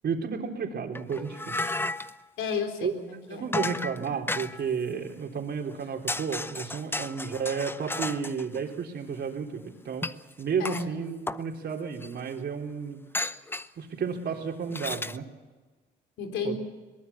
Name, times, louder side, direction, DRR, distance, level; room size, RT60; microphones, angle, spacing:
voice 1, 0.0-1.7 2.8-2.9 3.3-10.1 10.4-13.0 13.8-15.3 16.4-16.5, right 6 dB, 55° right, 2 dB, 3.7 m, -32 dB
sound 1, 1.0-2.2 3.5-4.7 5.7-5.8 6.1-8.6 10.0-10.8 11.3-11.4 12.0-12.1 13.1-13.7 14.7-15.2, left 2 dB, 10° left, 0.7 m, -33 dB
voice 2, 2.4-3.5 7.2-7.4 10.6-10.9 16.2-16.5, left 5 dB, 80° left, 4 dB, 3.8 m, -33 dB
22.5 x 20.0 x 7.1 m, 1.2 s
cardioid pair, 90°, 20 cm